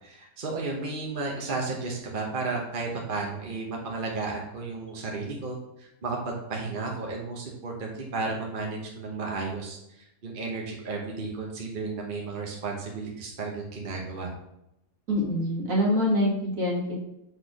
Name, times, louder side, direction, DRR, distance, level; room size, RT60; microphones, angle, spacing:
voice 1, 0.0-14.3, right 3 dB, 40° right, -1 dB, 1.1 m, -33 dB
voice 2, 15.1-17.0, left 1 dB, 65° right, -3 dB, 2.2 m, -25 dB
6.3 x 4.4 x 4.9 m, 0.84 s
omnidirectional pair, 1.5 m